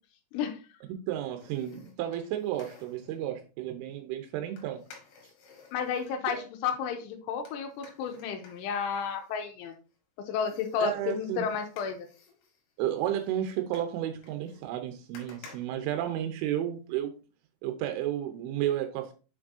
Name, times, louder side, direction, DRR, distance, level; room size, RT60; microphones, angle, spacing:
voice 1, 0.9-4.8 6.3-6.4 10.8-11.5 12.8-17.1 17.6-19.1, right 11 dB, 90° right, 6 dB, 3.3 m, -32 dB
sound 1, 1.4-3.2 4.6-6.2 7.5-10.0 10.4-16.6 17.0-17.1, left 4 dB, 65° left, 3.6 m, -55 dB
voice 2, 5.7-9.7 10.2-12.1, left 7 dB, 85° left, 6 dB, 3.1 m, -32 dB
7.3 x 6.1 x 2.6 m, 0.34 s
omnidirectional pair, 5.6 m